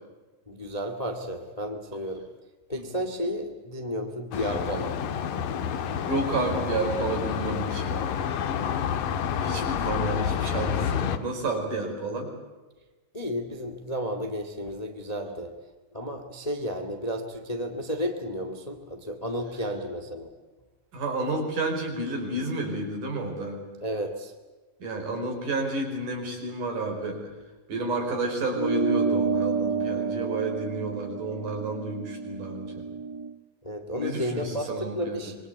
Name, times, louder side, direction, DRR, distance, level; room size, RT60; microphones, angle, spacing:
voice 1, 0.5-2.2 2.7-5.0 9.4-9.7 13.1-15.6 15.9-20.3 23.8-24.3 33.6-35.4, equal, 15° left, 6 dB, 1.7 m, -32 dB
sound 1, 4.3-11.2, left 8 dB, 75° left, 2.9 m, -29 dB
voice 2, 6.1-8.1 9.4-12.3 20.9-23.6 24.8-27.2 27.7-32.8 33.9-35.3, right 2 dB, 65° right, 2 dB, 6.5 m, -31 dB
sound 2, 28.5-33.3, right 5 dB, 25° right, 0.6 m, -29 dB
26.0 x 23.0 x 8.3 m, 1.2 s
omnidirectional pair, 3.9 m